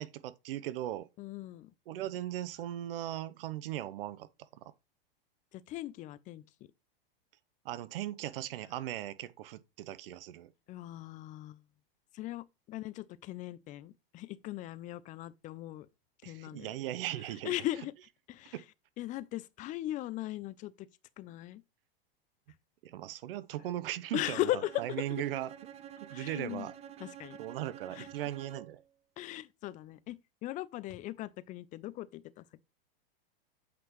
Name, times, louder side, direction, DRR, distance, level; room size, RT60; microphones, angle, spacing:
voice 1, 0.0-1.1 1.9-4.3 7.6-10.5 16.2-17.5 18.5-18.6 22.8-24.4 24.8-25.5 26.1-26.7 27.4-28.8, right 13 dB, 70° right, 0.8 m, -38 dB
voice 2, 1.2-1.7 5.5-6.4 10.7-11.6 12.1-15.9 16.2-16.8 17.2-17.9 18.3-18.6 19.0-20.9 21.2-21.6 24.1-24.8 25.1-25.2 26.1-26.7 27.0-27.4 27.9-28.1 29.2-32.6, left 15 dB, 25° left, 0.4 m, -38 dB
Bowed string instrument, 24.6-28.9, right 9 dB, 20° right, 0.6 m, -49 dB
8.4 x 6.0 x 3.1 m
hypercardioid pair, 125°, 30 cm